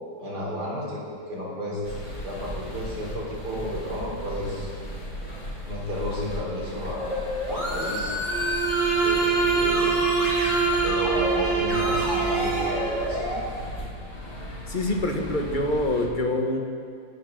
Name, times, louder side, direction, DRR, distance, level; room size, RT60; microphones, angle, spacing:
voice 1, 0.2-1.0 1.3-1.8 2.2-4.7 5.7-7.2 7.5-8.1 9.0-10.2 10.8-13.4, left 1 dB, 60° right, -4 dB, 4.0 m, -32 dB
Charing Cross taxis outside, 1.8-16.1, equal, 50° left, 3.6 m, -37 dB
sound 1, 7.0-11.4 11.7-13.4, equal, 30° right, 4.2 m, -29 dB
Bowed string instrument, 8.2-13.1, right 6 dB, 70° left, 3.1 m, -25 dB
voice 2, 14.7-16.6, left 1 dB, 30° left, 2 dB, 1.3 m, -25 dB
25.5 x 11.0 x 3.8 m, 2.2 s
omnidirectional pair, 2.0 m